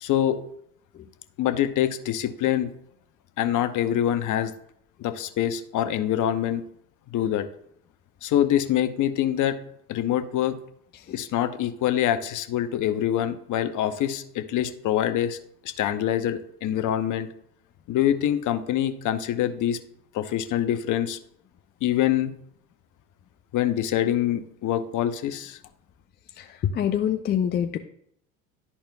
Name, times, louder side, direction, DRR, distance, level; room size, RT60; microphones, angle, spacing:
voice 1, 0.0-0.4 1.4-2.7 3.4-4.5 5.0-6.6 7.1-7.4 8.2-9.6 9.9-10.6 11.1-15.4 15.6-17.3 17.9-19.8 20.1-21.2 21.8-22.3 23.5-25.6, left 11 dB, 45° left, 9 dB, 0.9 m, -25 dB
voice 2, 26.3-27.8, left 9 dB, 25° left, 6 dB, 0.4 m, -26 dB
12.0 x 4.3 x 2.3 m, 0.70 s
hypercardioid pair, 80°, 43 cm